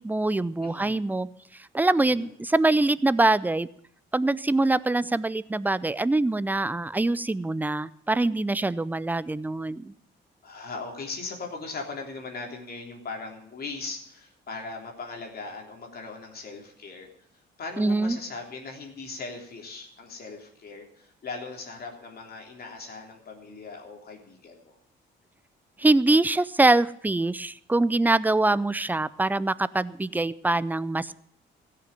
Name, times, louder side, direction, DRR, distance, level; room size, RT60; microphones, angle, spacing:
voice 1, 0.0-3.7 4.1-9.9 17.8-18.2 25.8-31.1, right 2 dB, 10° right, 18 dB, 0.5 m, -24 dB
voice 2, 0.6-1.0 2.2-2.3 10.4-17.1 17.6-24.7, left 3 dB, 50° left, 2 dB, 3.5 m, -39 dB
16.0 x 6.8 x 8.9 m, 0.66 s
cardioid pair, 90°, 20 cm